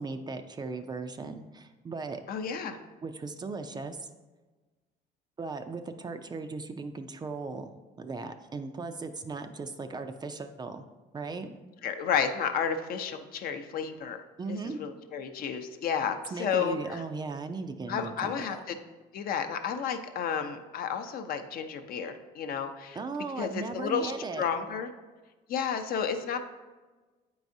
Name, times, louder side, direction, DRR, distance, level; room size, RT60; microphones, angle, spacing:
voice 1, 0.0-2.2 3.0-4.0 5.4-10.9 11.1-11.6 14.4-14.8 16.3-18.4 22.9-24.4, right 4 dB, 25° right, 8 dB, 0.4 m, -37 dB
voice 2, 2.3-2.8 11.8-14.2 14.5-17.0 17.9-18.8 19.1-23.0 23.4-24.1 24.4-24.9 25.5-26.4, left 7 dB, 60° left, 7 dB, 0.6 m, -32 dB
8.4 x 4.7 x 2.7 m, 1.3 s
cardioid pair, 110°, 17 cm